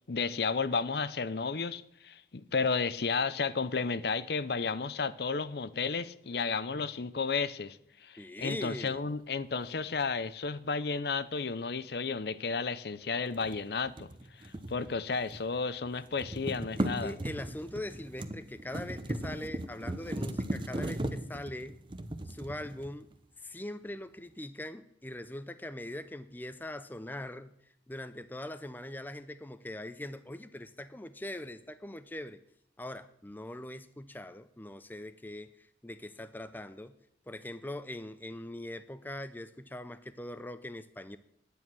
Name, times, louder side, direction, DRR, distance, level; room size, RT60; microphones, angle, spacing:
voice 1, 0.1-14.1 14.4-17.2, left 4 dB, 60° left, 0.6 m, -33 dB
voice 2, 8.2-9.0 16.8-21.8 22.2-23.1 23.4-32.4 32.8-37.0 37.3-41.2, left 1 dB, 10° left, 0.5 m, -42 dB
sound 1, 13.3-15.6 15.9-23.2, right 1 dB, 25° right, 0.8 m, -37 dB
10.5 x 9.8 x 6.1 m
head